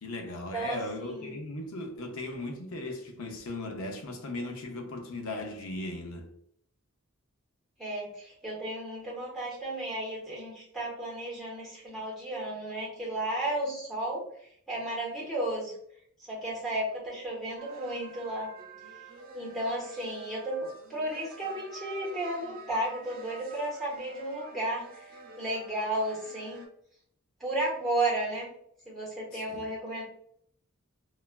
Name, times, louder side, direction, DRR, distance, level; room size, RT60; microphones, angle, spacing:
voice 1, 0.0-6.3 29.3-29.7, left 2 dB, 70° left, 0.6 m, -37 dB
voice 2, 0.5-1.4 7.8-14.2 14.7-15.7 16.3-18.5 19.3-25.1 25.4-26.6 27.4-28.5 28.8-30.0, right 1 dB, ahead, 1.1 m, -33 dB
sound 1, 17.6-26.7, right 3 dB, 40° right, 0.5 m, -48 dB
3.1 x 2.3 x 2.2 m
head